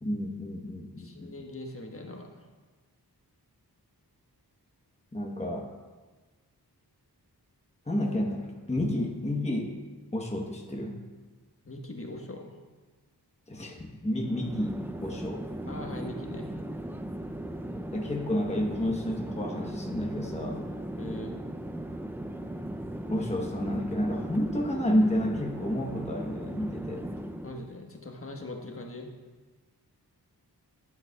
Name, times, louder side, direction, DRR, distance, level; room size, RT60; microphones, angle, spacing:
voice 1, 0.0-1.3 5.1-5.7 7.9-9.8 10.1-11.0 13.5-15.4 17.9-20.7 23.1-27.0, left 1 dB, 15° left, 0 dB, 1.0 m, -30 dB
voice 2, 1.0-2.3 11.6-12.6 15.7-16.5 21.0-21.3 27.4-29.1, left 2 dB, 35° left, 1 dB, 1.3 m, -41 dB
Chatter / Fixed-wing aircraft airplane, 14.2-27.6, right 1 dB, 5° right, 0.4 m, -37 dB
10.5 x 8.9 x 2.3 m, 1.3 s
wide cardioid pair, 65°, 39 cm